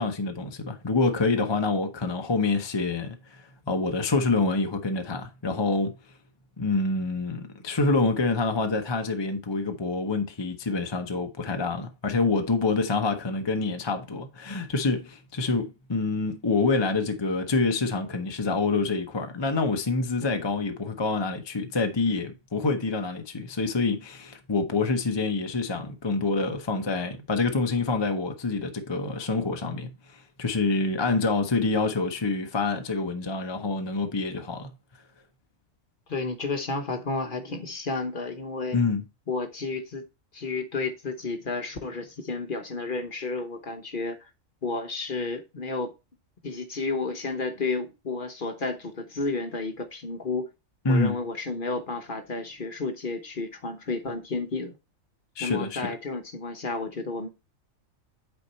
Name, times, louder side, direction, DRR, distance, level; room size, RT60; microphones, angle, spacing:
voice 1, 0.0-5.9 6.6-34.7 38.7-39.0 50.8-51.2 55.4-55.9, left 3 dB, 25° left, 0.7 m, -27 dB
voice 2, 36.1-38.8 39.3-40.0 40.3-44.3 44.6-45.9 46.4-50.5 50.9-54.7 55.4-57.3, left 3 dB, 45° left, 1.0 m, -31 dB
8.3 x 4.5 x 4.3 m
omnidirectional pair, 1.4 m